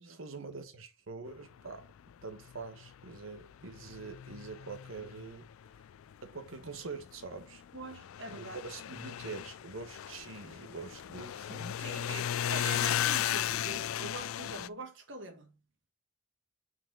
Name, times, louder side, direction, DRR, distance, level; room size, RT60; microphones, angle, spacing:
voice 1, 0.0-1.9 2.2-5.5 6.2-7.6 8.3-11.8, right 4 dB, 80° right, 1.2 m, -45 dB
sound 1, 1.7-1.8 2.1-6.5 6.8-14.7, left 11 dB, 85° left, 0.3 m, -36 dB
voice 2, 7.7-8.6 11.8-15.6, right 2 dB, 60° right, 1.6 m, -44 dB
6.3 x 4.7 x 6.0 m
head